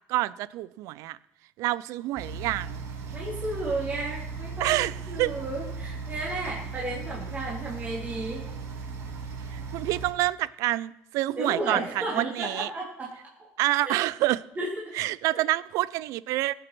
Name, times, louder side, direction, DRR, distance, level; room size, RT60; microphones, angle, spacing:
voice 1, 0.1-1.2 1.6-2.8 4.6-5.3 9.5-12.7 13.6-14.4 14.9-16.5, right 16 dB, 70° right, 0.5 m, -27 dB
sound 1, 2.2-10.1, right 4 dB, 55° right, 2.5 m, -37 dB
voice 2, 3.1-8.5 11.4-13.1 13.8-13.9 14.6-14.9 15.3-15.4, right 2 dB, 30° right, 3.6 m, -33 dB
17.0 x 7.9 x 6.2 m
cardioid pair, 115°, 6 cm